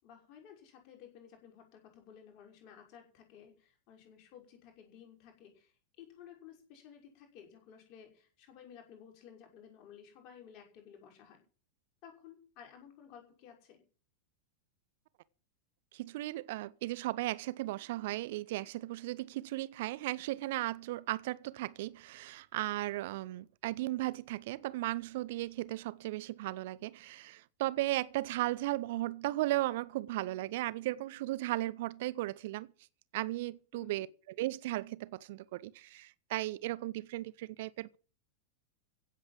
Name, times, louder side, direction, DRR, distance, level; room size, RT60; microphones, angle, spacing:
voice 1, 0.0-11.4 12.0-13.8 33.7-34.0, left 8 dB, 40° left, 6.0 m, -55 dB
voice 2, 15.9-32.7 33.1-38.0, right 17 dB, 50° right, 0.7 m, -36 dB
16.0 x 8.0 x 7.8 m
figure-of-eight pair, 90°, 0 cm